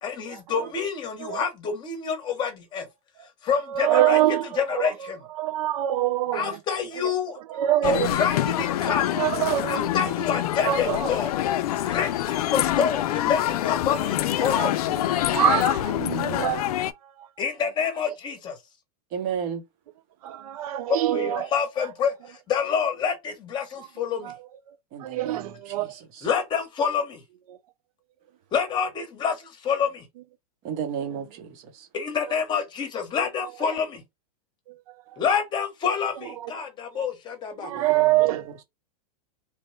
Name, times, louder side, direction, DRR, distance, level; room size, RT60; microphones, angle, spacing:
voice 1, 0.0-2.9 3.4-5.2 6.3-7.4 7.8-9.2 9.6-11.4 11.8-15.0 17.4-18.6 20.9-24.3 26.2-27.2 28.5-30.0 31.9-34.0 35.2-37.9, left 6 dB, 25° left, 0.9 m, -28 dB
voice 2, 3.7-4.9 5.4-6.6 7.5-8.2 9.2-9.9 10.6-11.0 14.6-14.7 15.3-16.7 20.2-21.5 24.2-24.4 25.0-25.9 36.4-36.5 37.6-38.5, right 13 dB, 70° right, 0.4 m, -24 dB
sound 1, 7.8-16.9, left 13 dB, 75° left, 0.4 m, -25 dB
voice 3, 19.1-19.6 24.9-26.3 30.6-31.9 37.7-38.5, right 7 dB, 40° right, 0.9 m, -34 dB
3.1 x 2.2 x 3.1 m
supercardioid pair, 140°, 20 cm